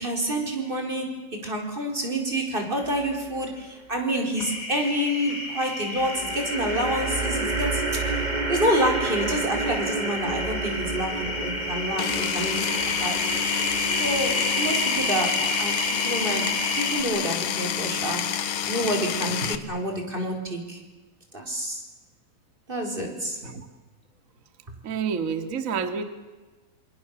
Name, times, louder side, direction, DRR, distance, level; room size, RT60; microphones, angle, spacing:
voice 1, 0.0-8.1 8.5-13.3 13.9-20.8 21.3-21.8 22.7-23.4, equal, 15° right, 3 dB, 4.6 m, -28 dB
sound 1, 2.8-3.5 5.9-17.3, right 3 dB, 70° right, 0.4 m, -32 dB
sound 2, 4.4-17.0, left 2 dB, 25° left, 3.8 m, -30 dB
Power tool, 12.0-19.6, left 9 dB, 90° left, 1.1 m, -28 dB
voice 2, 24.8-26.0, right 6 dB, 30° right, 8 dB, 1.7 m, -28 dB
27.0 x 27.0 x 7.2 m, 1.2 s
omnidirectional pair, 4.1 m